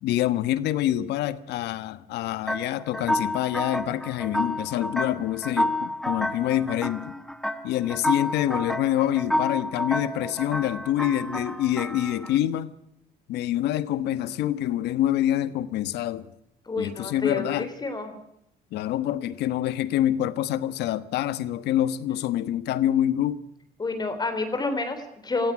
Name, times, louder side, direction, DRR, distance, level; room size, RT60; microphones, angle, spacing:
voice 1, 0.0-7.1 7.6-12.8 13.3-16.3 16.8-17.7 18.7-23.4, left 12 dB, 80° left, 1.3 m, -26 dB
sound 1, 2.5-12.4, left 1 dB, ahead, 1.3 m, -30 dB
voice 2, 16.7-18.1 23.8-25.5, left 3 dB, 25° left, 3.5 m, -29 dB
17.5 x 15.5 x 9.8 m
cardioid pair, 110°, 17 cm